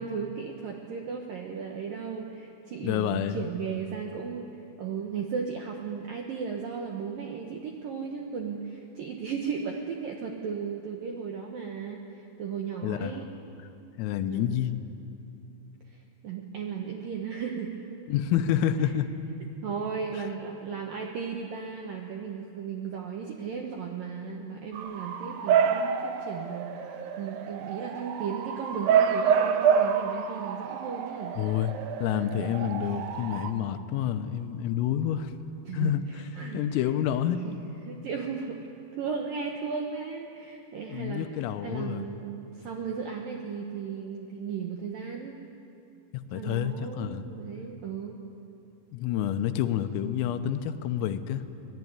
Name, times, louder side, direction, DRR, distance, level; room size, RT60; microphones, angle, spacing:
voice 1, 0.0-13.3 14.2-14.7 15.9-18.0 18.8-18.9 19.6-31.4 35.7-36.8 37.4-37.6 37.8-38.6 38.9-41.3 41.6-45.4 46.3-48.2, right 6 dB, 70° right, 2 dB, 2.1 m, -36 dB
voice 2, 2.8-3.4 12.8-13.2 14.0-14.8 18.1-19.1 31.4-31.7 32.0-35.3 35.7-36.0 36.5-37.4 40.9-42.1 46.3-47.2 48.9-51.4, left 10 dB, 90° left, 9 dB, 3.6 m, -28 dB
Bark / Motor vehicle (road) / Siren, 24.8-33.5, right 7 dB, 90° right, 2.0 m, -27 dB
24.5 x 19.0 x 9.8 m, 2.7 s
omnidirectional pair, 5.9 m